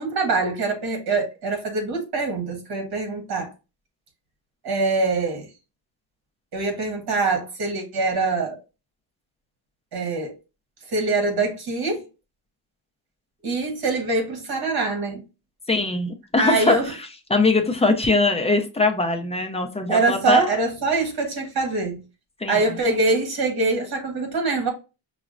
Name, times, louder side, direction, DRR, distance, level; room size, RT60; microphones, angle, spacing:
voice 1, 0.0-3.5 4.6-5.5 6.5-8.6 9.9-10.3 10.9-12.0 13.4-15.2 16.4-16.8 19.9-22.0 22.5-24.7, right 3 dB, 55° right, 1.5 m, -24 dB
voice 2, 15.7-20.5 22.4-22.8, left 3 dB, 15° left, 0.4 m, -22 dB
5.7 x 2.0 x 2.4 m
wide cardioid pair, 160°, 45 cm